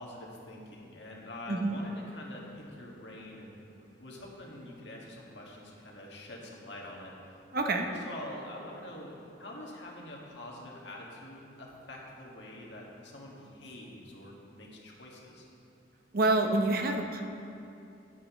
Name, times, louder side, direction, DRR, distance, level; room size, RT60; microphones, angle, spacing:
voice 1, 0.0-3.5 4.0-7.4 7.6-9.1 9.4-15.5, left 1 dB, 65° left, -2 dB, 1.8 m, -45 dB
voice 2, 7.5-7.9 16.1-17.2, right 2 dB, 50° right, 3 dB, 0.8 m, -27 dB
13.5 x 9.4 x 3.1 m, 2.7 s
head